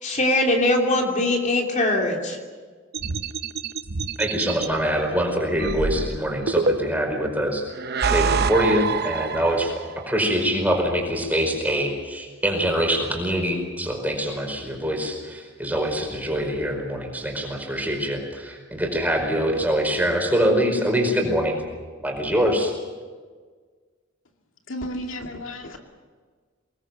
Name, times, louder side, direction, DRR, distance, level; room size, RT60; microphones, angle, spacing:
voice 1, 0.0-2.4, left 1 dB, 40° left, 1 dB, 3.1 m, -21 dB
sound 1, 2.9-4.7 5.6-7.1 7.7-9.9, right 5 dB, 50° right, 0.8 m, -26 dB
voice 2, 4.2-7.6 8.1-9.7 10.1-21.6 22.0-22.7, equal, 10° right, 2 dB, 4.9 m, -24 dB
voice 3, 24.7-25.8, equal, 75° left, 3 dB, 2.3 m, -33 dB
25.0 x 19.5 x 7.8 m, 1.5 s
head